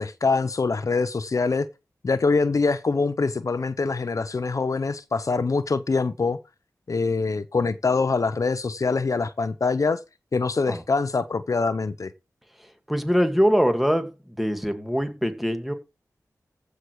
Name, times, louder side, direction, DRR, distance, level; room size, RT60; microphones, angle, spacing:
voice 1, 0.0-1.7 2.0-6.4 6.9-10.0 10.3-12.1, left 4 dB, 60° left, 0.9 m, -24 dB
voice 2, 12.9-14.1 14.4-15.7, equal, ahead, 2.3 m, -23 dB
15.0 x 6.5 x 4.8 m
wide cardioid pair, 75°, 6 cm